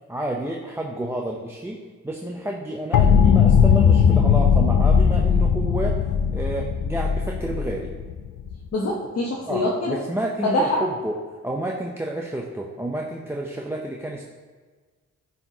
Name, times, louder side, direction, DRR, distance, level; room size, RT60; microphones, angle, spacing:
voice 1, 0.1-1.8 2.0-6.0 6.3-7.9 9.5-11.1 11.4-14.2, right 1 dB, 10° right, -2 dB, 0.5 m, -30 dB
sound 1, 2.9-8.6, left 7 dB, 85° left, 0.5 m, -18 dB
voice 2, 8.7-10.0 10.4-10.8, left 2 dB, 50° left, -4 dB, 1.0 m, -24 dB
9.8 x 4.5 x 2.8 m, 1.4 s
cardioid pair, 105°, 31 cm